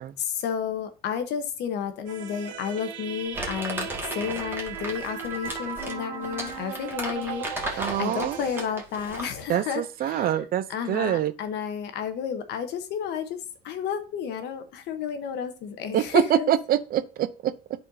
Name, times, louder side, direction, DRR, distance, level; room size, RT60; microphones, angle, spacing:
voice 1, 0.2-10.3 10.7-13.4 13.6-16.5, left 8 dB, 70° left, 1.1 m, -32 dB
sound 1, 2.1-8.7, right 7 dB, 85° right, 0.9 m, -37 dB
Crumpling crinkling, 3.3-9.4, right 1 dB, 10° right, 2.0 m, -35 dB
voice 2, 7.8-8.4 9.5-11.3 15.9-17.5, right 11 dB, 55° right, 0.6 m, -25 dB
10.5 x 4.4 x 2.7 m
supercardioid pair, 85°, 18 cm